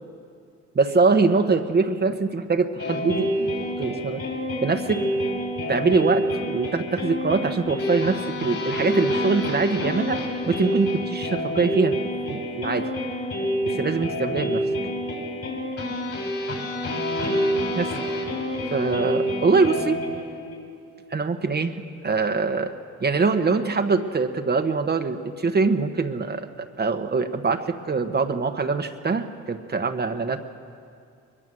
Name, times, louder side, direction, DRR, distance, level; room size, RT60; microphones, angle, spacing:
voice 1, 0.7-3.5 3.8-4.2 4.6-5.1 5.7-12.0 12.3-12.9 13.6-14.7 17.7-17.9 18.7-20.0 21.1-22.7 23.0-26.5 26.8-30.4, right 4 dB, 35° right, 5 dB, 1.3 m, -23 dB
sound 1, 2.8-20.6, equal, 50° left, 6.1 m, -27 dB
22.5 x 21.0 x 7.8 m, 2.4 s
cardioid pair, 90°, 30 cm